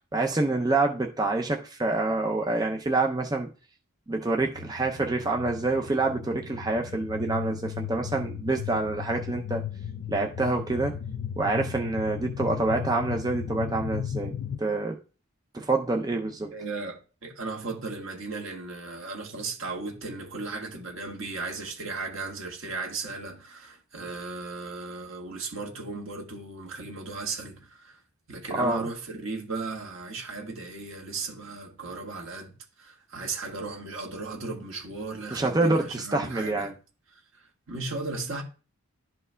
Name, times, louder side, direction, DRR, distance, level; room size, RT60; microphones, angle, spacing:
voice 1, 0.1-3.5 4.1-9.6 10.1-11.0 11.4-14.3 14.6-15.0 15.5-16.5 28.6-28.9 35.3-36.7, right 2 dB, 20° right, 0.5 m, -27 dB
sound 1, 4.5-14.6, left 8 dB, 60° left, 0.4 m, -36 dB
voice 2, 16.5-28.0 28.3-36.7 37.3-38.4, right 3 dB, 65° right, 1.6 m, -36 dB
12.0 x 4.4 x 2.2 m
head